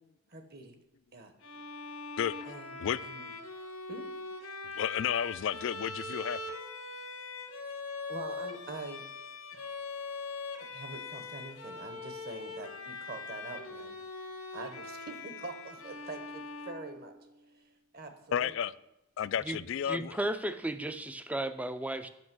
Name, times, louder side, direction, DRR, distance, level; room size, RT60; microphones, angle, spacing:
voice 1, 0.3-0.8 1.1-1.3 2.4-2.8 3.0-3.3 3.9-4.1 8.0-9.0 9.5-9.6 10.7-13.9 14.5-17.1 17.9-18.7, right 3 dB, 45° right, 1.1 m, -44 dB
Bowed string instrument, 1.4-17.5, left 3 dB, 80° left, 1.4 m, -42 dB
voice 2, 2.2-2.5 2.8-3.0 4.8-6.4 18.3-18.7 19.2-20.1, left 9 dB, 60° left, 0.3 m, -32 dB
voice 3, 19.9-22.1, right 1 dB, 5° right, 0.4 m, -34 dB
8.5 x 5.8 x 6.1 m
head